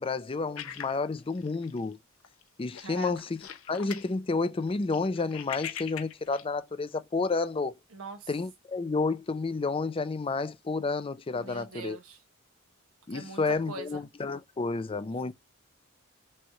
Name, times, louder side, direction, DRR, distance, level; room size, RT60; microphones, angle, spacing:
voice 1, 0.0-2.0 2.6-7.7 8.3-12.0 13.1-15.3, left 3 dB, 25° left, 0.4 m, -30 dB
sound 1, 0.6-1.9 2.2-2.4 2.7-4.1 4.5-6.5, left 9 dB, 70° left, 0.7 m, -42 dB
voice 2, 2.8-3.1 7.9-8.3 11.3-12.2 13.1-14.0, right 4 dB, 90° right, 1.3 m, -42 dB
6.2 x 2.3 x 3.0 m
head